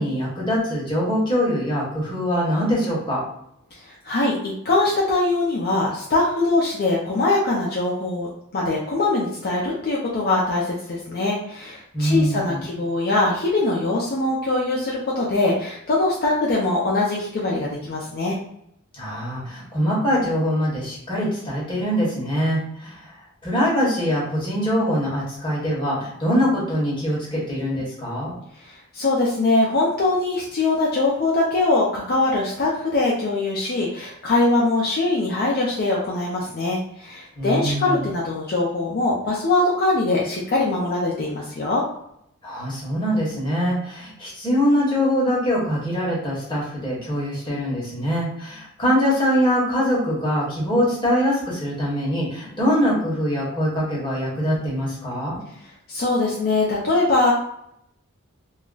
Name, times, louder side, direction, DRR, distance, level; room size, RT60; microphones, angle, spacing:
voice 1, 0.0-3.2 11.9-12.6 18.9-23.0 23.4-28.4 37.4-38.1 42.4-55.4, equal, 20° left, -6 dB, 1.0 m, -23 dB
voice 2, 4.0-18.4 28.6-41.8 55.9-57.3, left 2 dB, 45° left, -4 dB, 0.4 m, -22 dB
2.3 x 2.1 x 3.8 m, 0.75 s
head